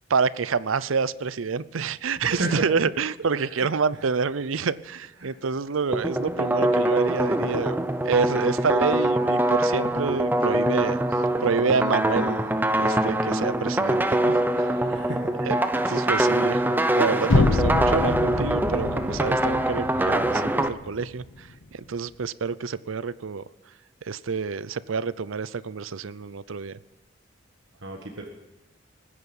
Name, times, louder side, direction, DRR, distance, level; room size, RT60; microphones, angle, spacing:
voice 1, 0.1-7.8 8.0-11.0 11.4-12.5 12.8-15.1 15.4-15.6 15.9-23.4 24.1-26.8, right 5 dB, 85° right, 18 dB, 0.6 m, -28 dB
voice 2, 2.2-2.9 3.5-3.7 5.2-5.3 14.9-15.3 27.8-28.3, right 2 dB, 65° right, 2 dB, 1.5 m, -31 dB
sound 1, 5.9-20.7, right 1 dB, 10° right, 0.7 m, -24 dB
sound 2, 17.3-21.3, left 2 dB, 65° left, 0.8 m, -26 dB
20.5 x 9.8 x 7.1 m, 1.1 s
head